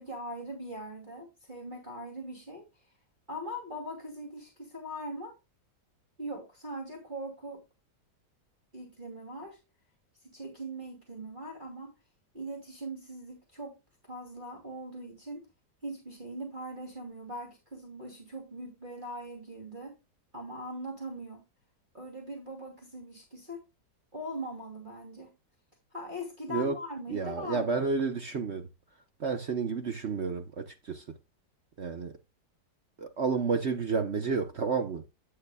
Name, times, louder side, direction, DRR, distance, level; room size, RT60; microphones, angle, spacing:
voice 1, 0.0-2.7 3.3-5.4 6.2-7.6 8.7-9.6 10.2-11.9 12.3-13.7 14.0-15.5 15.8-19.9 20.3-21.4 21.9-23.6 24.1-25.3 25.9-27.7, equal, 25° right, 2.8 m, -41 dB
voice 2, 27.1-28.7 29.2-31.2 31.8-32.1 33.0-35.0, right 5 dB, 50° right, 0.9 m, -31 dB
10.5 x 7.8 x 2.2 m
omnidirectional pair, 1.9 m